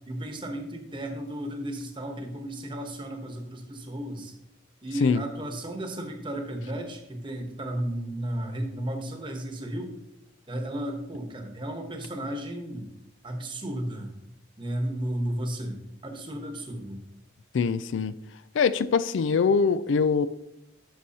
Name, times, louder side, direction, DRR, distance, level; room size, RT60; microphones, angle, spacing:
voice 1, 0.1-4.3 4.8-9.9 10.5-12.9 13.2-14.2 14.6-17.0, right 1 dB, 25° right, 1.1 m, -34 dB
voice 2, 17.5-18.1 18.5-20.3, left 5 dB, 85° left, 0.4 m, -23 dB
11.5 x 6.2 x 2.8 m
head